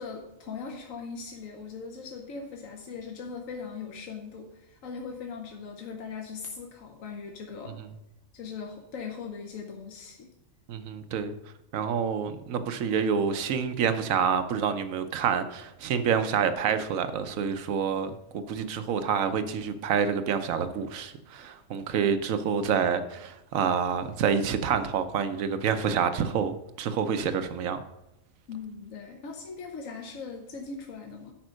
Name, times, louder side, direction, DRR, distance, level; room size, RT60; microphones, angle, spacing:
voice 1, 0.0-7.8 8.3-10.3 28.5-31.3, left 5 dB, 75° left, 1.3 m, -40 dB
voice 2, 10.7-11.3 11.7-27.8, right 7 dB, 80° right, 1.1 m, -28 dB
8.8 x 5.3 x 6.3 m
omnidirectional pair, 1.4 m